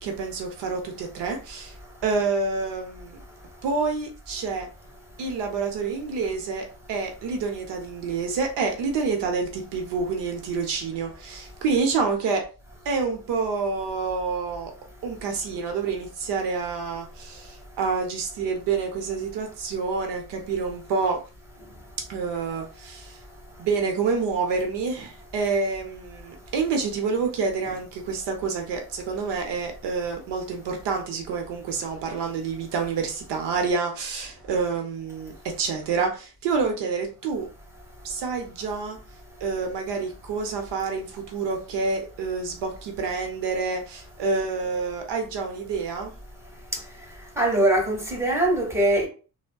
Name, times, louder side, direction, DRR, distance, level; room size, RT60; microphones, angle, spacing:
voice 1, 0.0-1.7 2.0-3.2 3.6-4.7 5.2-12.4 12.8-14.7 15.0-21.2 22.1-23.2 23.6-37.5 38.0-39.0 39.4-46.1, right 4 dB, 75° right, 0.7 m, -28 dB
voice 2, 47.4-49.1, right 1 dB, 5° right, 1.2 m, -22 dB
3.4 x 2.0 x 2.2 m
cardioid pair, 95°, 42 cm